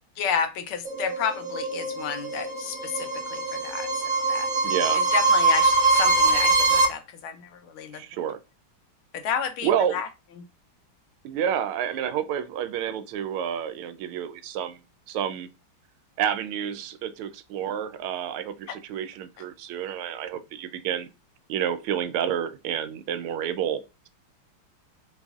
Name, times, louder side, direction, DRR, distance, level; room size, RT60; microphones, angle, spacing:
voice 1, 0.2-3.9 4.3-4.5 5.1-7.5 7.7-8.0 9.1-10.1, left 7 dB, 85° left, 1.5 m, -31 dB
sound 1, 0.9-6.9, right 3 dB, 60° right, 1.4 m, -23 dB
voice 2, 4.6-5.0 7.9-8.4 9.6-10.0 11.2-14.8 15.1-15.5 16.2-21.1 21.5-24.1, right 9 dB, 90° right, 1.4 m, -29 dB
4.0 x 4.0 x 2.3 m
omnidirectional pair, 2.3 m